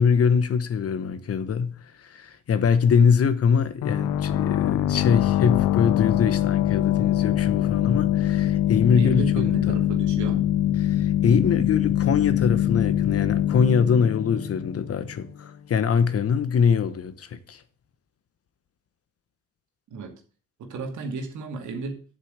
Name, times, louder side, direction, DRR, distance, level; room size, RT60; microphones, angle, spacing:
voice 1, 0.0-9.7 10.8-17.6, left 6 dB, 50° left, 1.1 m, -23 dB
sound 1, 3.8-15.3, left 12 dB, 80° left, 0.6 m, -23 dB
voice 2, 9.0-10.4 19.9-20.1 20.6-22.0, right 4 dB, 75° right, 2.4 m, -33 dB
7.7 x 6.4 x 8.1 m
cardioid pair, 90°, 30 cm